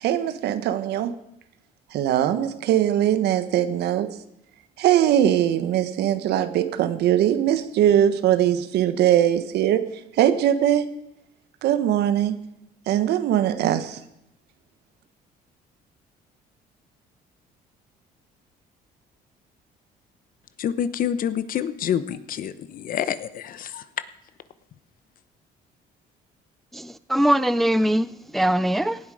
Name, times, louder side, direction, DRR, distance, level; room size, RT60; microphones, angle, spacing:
voice 1, 0.0-1.1 1.9-4.1 4.8-9.8 10.2-10.9 11.6-12.4 12.9-14.0, right 11 dB, 75° right, 11 dB, 1.3 m, -21 dB
voice 2, 20.6-23.8, left 9 dB, 55° left, 14 dB, 1.0 m, -27 dB
voice 3, 26.7-28.1 28.3-29.0, right 1 dB, ahead, 15 dB, 0.4 m, -21 dB
18.0 x 12.0 x 5.0 m, 0.83 s
cardioid pair, 110°, 17 cm